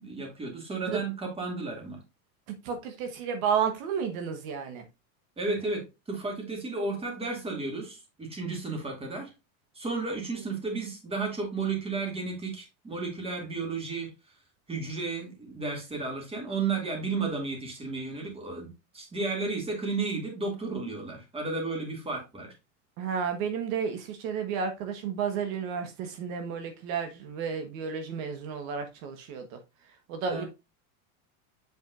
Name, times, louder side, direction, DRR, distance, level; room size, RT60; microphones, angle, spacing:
voice 1, 0.0-2.0 5.4-9.3 9.7-14.1 14.7-22.5 30.3-30.5, right 3 dB, 15° right, 2.5 m, -33 dB
voice 2, 2.6-4.8 23.0-29.6 30.1-30.4, right 6 dB, 65° right, 1.4 m, -32 dB
7.6 x 5.4 x 2.5 m
supercardioid pair, 145°, 44 cm